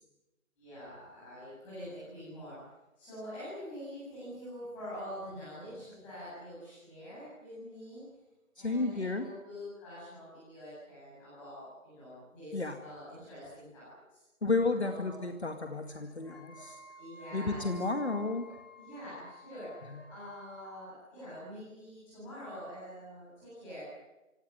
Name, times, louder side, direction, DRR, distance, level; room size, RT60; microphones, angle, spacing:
voice 1, 0.6-2.6 3.0-8.0 8.6-14.2 14.8-15.2 17.0-18.1 18.7-23.8, equal, 5° left, -11 dB, 7.9 m, -46 dB
voice 2, 8.6-9.3 12.5-12.8 14.4-16.8 17.3-18.7 19.9-20.0, left 3 dB, 50° left, 7 dB, 2.2 m, -32 dB
Wind instrument woodwind instrument, 16.2-20.8, left 2 dB, 30° left, 4.6 m, -52 dB
25.5 x 18.0 x 9.8 m, 1.0 s
figure-of-eight pair, 180°, 41 cm